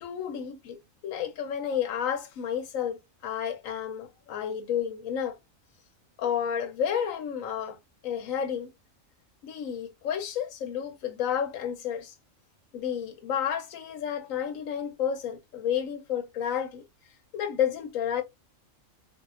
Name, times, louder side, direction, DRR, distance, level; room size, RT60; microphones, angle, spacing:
voice 1, 0.0-5.4 6.2-7.8 8.0-8.7 9.4-12.1 12.7-16.8 17.3-18.2, left 8 dB, 80° left, 1.1 m, -31 dB
3.4 x 2.8 x 2.4 m
omnidirectional pair, 1.4 m